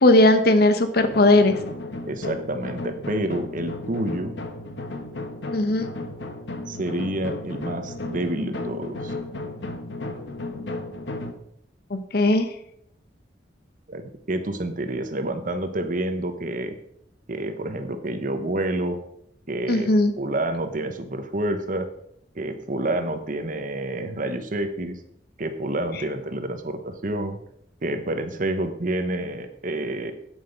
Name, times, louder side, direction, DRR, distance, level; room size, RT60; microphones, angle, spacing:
voice 1, 0.0-1.6 5.5-5.9 11.9-12.5 19.7-20.1, left 2 dB, 60° left, 9 dB, 0.8 m, -18 dB
sound 1, 0.9-11.3, left 2 dB, 80° left, 1.1 m, -34 dB
voice 2, 2.1-4.3 6.7-9.1 13.9-16.8 17.3-19.0 19.5-21.9 22.3-25.0 25.4-27.4 27.8-30.1, right 1 dB, 50° right, 8 dB, 1.0 m, -28 dB
9.1 x 7.4 x 5.3 m, 0.73 s
head